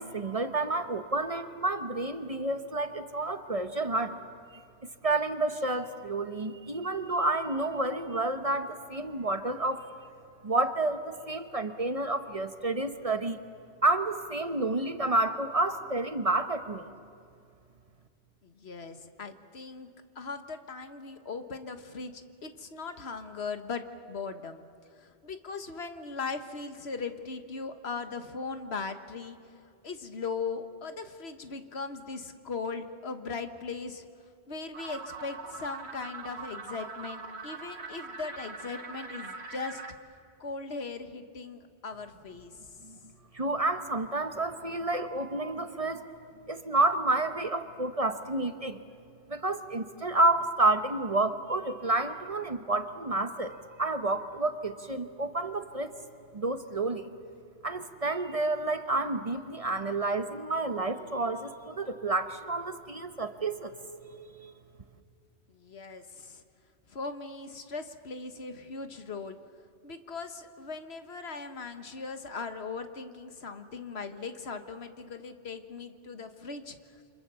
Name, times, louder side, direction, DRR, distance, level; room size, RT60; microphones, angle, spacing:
voice 1, 0.0-4.2 5.0-9.9 10.4-13.4 13.8-16.9 42.8-43.0 43.3-46.1 46.5-48.8 49.3-55.9 56.3-57.1 57.6-63.7 64.0-64.5, right 2 dB, 35° right, 9 dB, 1.1 m, -30 dB
voice 2, 18.4-19.9 20.1-24.6 25.0-29.4 29.8-34.0 34.5-39.8 40.4-42.5 65.5-66.4 66.9-69.4 69.8-76.8, left 4 dB, 75° left, 8 dB, 1.6 m, -39 dB
sound 1, 34.7-39.9, right 4 dB, 85° right, 1.6 m, -42 dB
28.5 x 25.5 x 7.0 m, 2.3 s
omnidirectional pair, 1.1 m